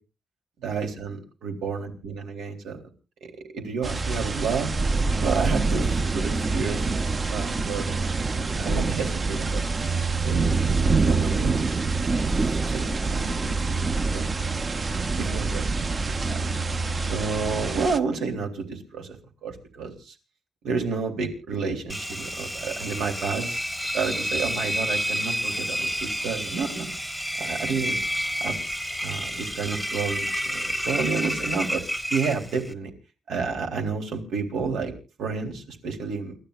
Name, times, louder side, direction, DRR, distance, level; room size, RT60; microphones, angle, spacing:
voice 1, 0.6-2.8 3.2-4.7 5.2-8.2 8.6-9.6 10.2-10.6 10.9-11.8 12.4-14.4 14.9-15.7 16.1-16.4 17.1-19.2 19.4-20.1 20.6-23.7 23.9-26.9 27.4-28.0 28.4-28.6 29.0-31.8 32.1-32.9 33.3-34.9 35.2-36.4, right 5 dB, 85° right, 2 dB, 3.7 m, -30 dB
sound 1, 3.8-18.0, right 4 dB, 30° right, 0.8 m, -25 dB
Engine, 21.9-32.7, equal, 5° right, 1.1 m, -30 dB
29.0 x 13.0 x 2.6 m, 0.33 s
cardioid pair, 120°, 0 cm